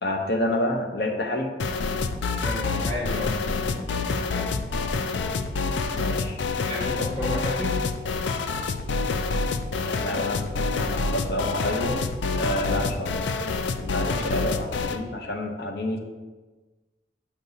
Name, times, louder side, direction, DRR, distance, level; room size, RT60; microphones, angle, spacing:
voice 1, 0.0-1.5 5.9-6.4 9.8-12.1 12.3-13.3 13.8-16.0, left 1 dB, 60° left, 2 dB, 0.8 m, -29 dB
sound 1, 1.6-15.0, left 4 dB, 80° left, 0.4 m, -27 dB
voice 2, 2.4-4.5 6.6-7.8, left 1 dB, 20° left, -6 dB, 1.4 m, -33 dB
6.8 x 6.5 x 2.7 m, 1.2 s
head